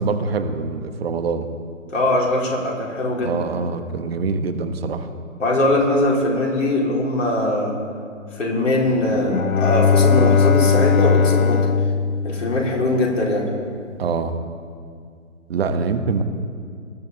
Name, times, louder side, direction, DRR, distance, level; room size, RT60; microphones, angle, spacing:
voice 1, 0.0-1.5 3.2-5.1 14.0-14.4 15.5-16.2, right 4 dB, 45° right, 9 dB, 1.3 m, -24 dB
voice 2, 1.9-3.5 5.4-7.8 8.3-11.7 12.2-13.5, left 1 dB, 65° left, -2 dB, 4.3 m, -21 dB
Bowed string instrument, 9.1-13.2, left 6 dB, 85° left, 0.6 m, -18 dB
19.5 x 13.5 x 4.3 m, 2.2 s
figure-of-eight pair, 140°, 40 cm